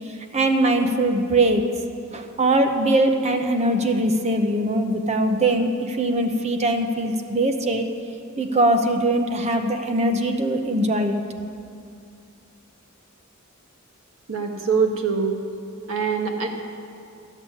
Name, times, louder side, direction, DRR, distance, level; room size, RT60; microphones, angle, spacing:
voice 1, 0.3-1.6 2.1-7.9 8.4-11.2, right 1 dB, 30° right, 5 dB, 0.9 m, -21 dB
voice 2, 14.3-15.4 15.9-16.5, right 5 dB, 70° right, 2 dB, 1.6 m, -23 dB
13.5 x 7.2 x 9.7 m, 2.4 s
head